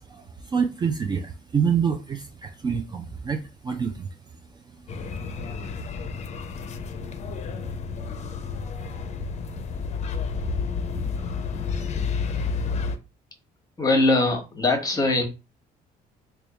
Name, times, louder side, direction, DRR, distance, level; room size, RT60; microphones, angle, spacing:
voice 1, 0.1-4.1, right 6 dB, 25° right, 0.4 m, -27 dB
sound 1, 4.9-13.0, left 5 dB, 45° left, 0.6 m, -30 dB
voice 2, 13.8-15.3, left 2 dB, 20° left, 1.0 m, -21 dB
3.3 x 2.3 x 3.9 m
cardioid pair, 110°, 17 cm